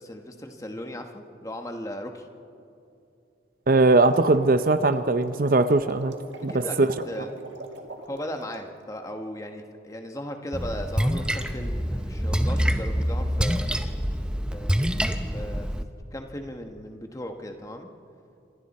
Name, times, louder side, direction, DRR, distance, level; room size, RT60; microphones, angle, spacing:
voice 1, 0.0-2.3 6.5-7.3 8.1-13.7 14.5-15.7 16.1-17.9, left 1 dB, 15° left, 4 dB, 1.3 m, -37 dB
voice 2, 3.7-6.1 6.4-6.9, right 3 dB, 45° right, 11 dB, 0.6 m, -20 dB
sound 1, 3.8-8.7, right 1 dB, 70° right, 1.9 m, -42 dB
Splash splatter, 10.5-15.8, equal, 5° right, 0.7 m, -26 dB
28.5 x 26.0 x 4.3 m, 2.6 s
head